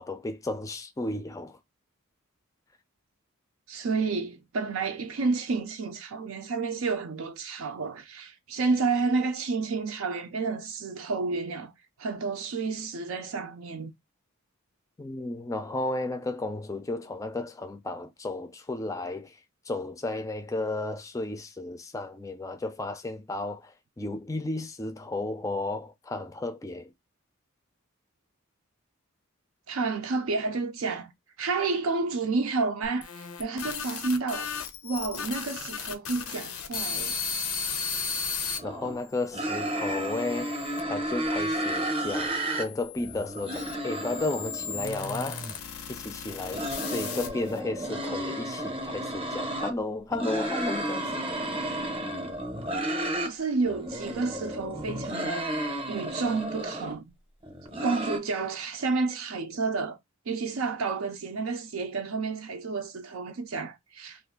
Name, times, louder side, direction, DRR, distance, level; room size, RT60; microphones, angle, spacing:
voice 1, 0.0-1.6 15.0-19.4 19.7-26.9 38.6-40.5 40.9-45.5 45.9-51.2, left 2 dB, 15° left, 0.4 m, -33 dB
voice 2, 3.7-11.7 12.0-13.9 29.7-31.1 31.4-34.5 34.8-37.2 53.2-55.5 55.9-57.1 57.8-60.0 60.3-64.2, right 4 dB, 75° right, 0.5 m, -30 dB
sound 1, 32.8-38.6 39.2-40.8 41.6-47.6, left 5 dB, 85° left, 0.6 m, -36 dB
sound 2, 38.6-39.0 39.3-42.7 43.0-45.5 46.3-49.7 50.1-53.3 53.6-56.9 57.4-58.2, right 1 dB, 25° right, 0.7 m, -32 dB
2.5 x 2.4 x 3.6 m
head